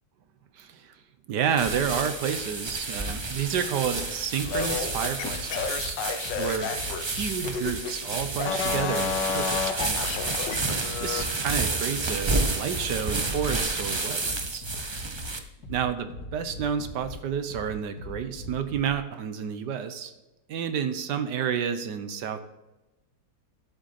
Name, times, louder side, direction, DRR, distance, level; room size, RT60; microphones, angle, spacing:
voice 1, 0.5-0.9 1.3-6.0 6.3-6.7 7.0-10.2 11.0-14.6 15.7-20.1 20.5-22.4, right 7 dB, 75° right, 10 dB, 1.4 m, -30 dB
sound 1, 1.6-15.4, right 3 dB, 30° right, 0.5 m, -31 dB
sound 2, 3.9-18.9, left 2 dB, 55° left, 3.1 m, -42 dB
sound 3, 4.5-7.9 8.3-11.3, left 6 dB, 90° left, 1.6 m, -31 dB
11.5 x 8.0 x 4.3 m, 1.0 s
omnidirectional pair, 1.9 m